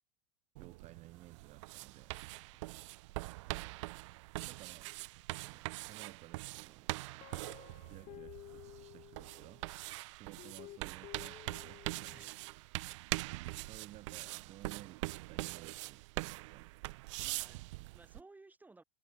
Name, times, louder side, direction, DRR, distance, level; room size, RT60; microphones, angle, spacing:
voice 1, 0.6-2.1 4.4-4.9 5.4-7.0 7.9-9.6 10.1-12.2 13.6-16.7, right 15 dB, 40° right, 4.2 m, -56 dB
sound 1, 0.6-18.2, right 22 dB, 70° right, 1.4 m, -43 dB
Guitar, 7.2-9.7 10.4-12.3, left 16 dB, 45° left, 3.7 m, -54 dB
voice 2, 12.1-12.5 17.2-18.8, right 3 dB, 10° right, 7.9 m, -59 dB
supercardioid pair, 120°, 17 cm